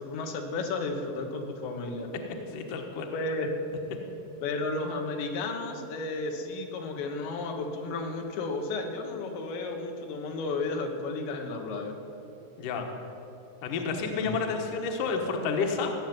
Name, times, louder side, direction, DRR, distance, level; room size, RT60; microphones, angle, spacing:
voice 1, 0.0-2.1 3.1-3.6 4.4-12.0 14.2-14.4, left 3 dB, 85° left, 3 dB, 3.6 m, -33 dB
voice 2, 2.5-3.1 12.6-12.8 13.6-15.9, left 4 dB, 65° left, 3 dB, 2.3 m, -30 dB
17.0 x 7.2 x 9.4 m, 2.9 s
omnidirectional pair, 5.0 m